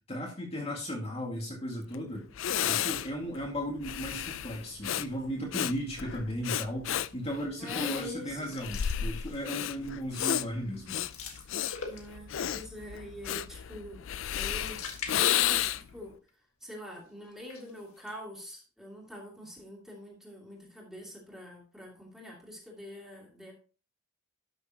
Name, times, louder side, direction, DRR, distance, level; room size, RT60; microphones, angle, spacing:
voice 1, 0.1-2.2 2.6-11.0, equal, 30° left, -2 dB, 1.9 m, -36 dB
Breathing, 1.9-2.0 2.3-16.0, left 10 dB, 65° left, 0.4 m, -32 dB
voice 2, 7.6-8.5 11.9-14.0 14.3-16.2 16.6-23.5, left 1 dB, ahead, -2 dB, 2.7 m, -45 dB
sound 1, 8.4-9.8 10.2-10.4 10.7-12.4 14.2-16.0 16.3-16.4 17.2-18.1, left 5 dB, 90° left, 1.7 m, -45 dB
12.0 x 6.5 x 2.9 m, 0.37 s
head